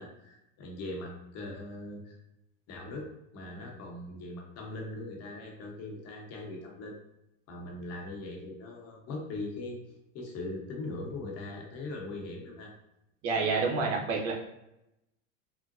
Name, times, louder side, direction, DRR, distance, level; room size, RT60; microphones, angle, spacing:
voice 1, 0.0-2.2 2.7-7.0 7.5-9.8 10.1-12.7, left 2 dB, 40° left, 0 dB, 0.9 m, -40 dB
voice 2, 13.2-14.3, right 4 dB, 60° right, -1 dB, 1.0 m, -28 dB
3.7 x 2.1 x 2.5 m, 0.85 s
supercardioid pair, 115°, 38 cm